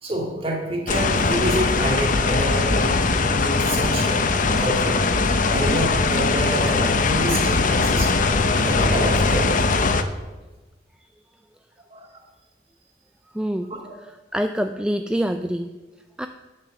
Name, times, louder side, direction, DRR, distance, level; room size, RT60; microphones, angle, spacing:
voice 1, 0.0-3.0 3.4-4.3 4.6-5.0 5.5-8.1 8.5-9.7 11.9-12.1, right 1 dB, 35° right, -1 dB, 2.7 m, -27 dB
sound 1, 0.9-10.0, left 3 dB, 45° left, 0.7 m, -20 dB
voice 2, 13.3-13.7 14.3-15.7 16.2-16.3, equal, 5° right, 7 dB, 0.3 m, -25 dB
9.4 x 6.6 x 6.9 m, 1.2 s
head